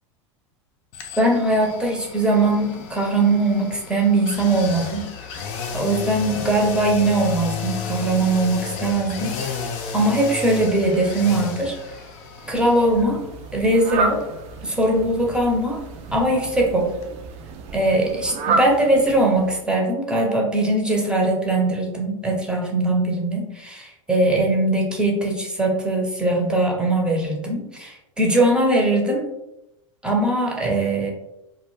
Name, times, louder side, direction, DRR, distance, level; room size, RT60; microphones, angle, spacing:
sound 1, 0.9-16.7 17.0-17.1, left 5 dB, 55° left, 0.5 m, -33 dB
voice 1, 1.2-5.0 5.7-9.6 9.9-11.8 12.5-13.2 13.5-14.2 14.6-15.8 16.1-16.9 17.7-29.3 30.0-31.1, right 2 dB, 5° right, 0 dB, 0.6 m, -21 dB
Fowl, 12.4-19.8, right 3 dB, 40° right, 0.4 m, -30 dB
2.2 x 2.1 x 3.1 m, 0.88 s
hypercardioid pair, 95°, 17 cm